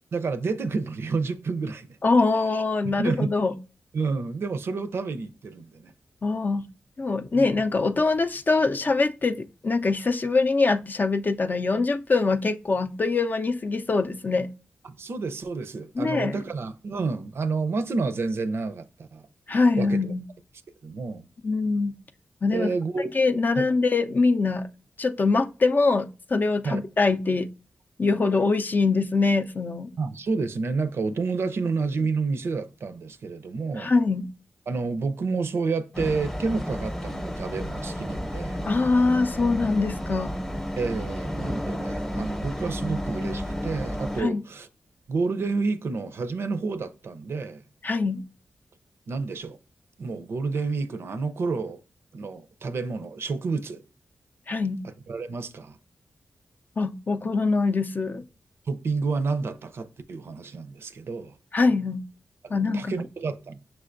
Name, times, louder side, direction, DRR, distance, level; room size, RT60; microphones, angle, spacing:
voice 1, 0.1-2.0 2.8-3.4 3.9-5.9 7.3-7.5 14.8-19.3 19.7-20.1 20.8-21.3 22.5-23.1 23.5-23.7 26.6-26.8 30.0-33.9 34.7-38.6 40.8-44.7 45.1-47.6 49.1-49.6 50.0-51.8 52.1-53.8 55.1-55.8 58.7-61.4 62.4-63.6, right 4 dB, 70° right, 0.5 m, -29 dB
voice 2, 2.0-3.5 6.2-6.7 7.0-14.5 16.0-16.3 19.5-20.2 21.4-21.9 22.4-22.7 23.1-24.7 25.0-27.5 28.0-29.9 33.8-34.3 38.6-40.4 44.2-44.4 47.8-48.2 54.5-54.8 56.8-58.2 61.5-62.0 62.5-62.9, left 3 dB, 45° left, 0.4 m, -23 dB
sound 1, 35.9-44.2, equal, 10° left, 0.7 m, -32 dB
5.9 x 3.3 x 2.5 m
cardioid pair, 60°, 4 cm